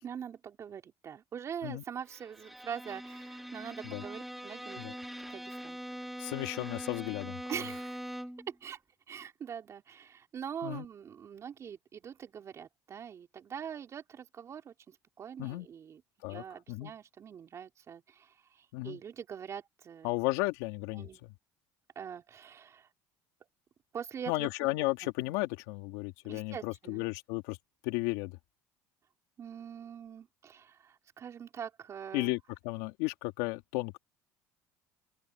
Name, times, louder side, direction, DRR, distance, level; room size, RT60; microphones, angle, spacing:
voice 1, 0.0-4.8 5.3-5.8 7.5-8.1 8.5-8.8 9.1-16.0 16.3-20.1 20.9-21.2 22.0-22.9 23.9-24.5 25.0-25.1 26.3-27.1 29.4-32.3, right 8 dB, 40° right, 3.9 m, -43 dB
Bowed string instrument, 2.1-8.5, equal, ahead, 2.0 m, -43 dB
voice 2, 6.2-7.4 10.6-10.8 15.4-15.7 16.2-16.9 18.7-19.0 20.0-21.1 24.3-27.6 27.8-28.4 32.1-32.4 32.6-34.0, left 21 dB, 85° left, 2.5 m, -34 dB
open air
supercardioid pair, 95°, 7 cm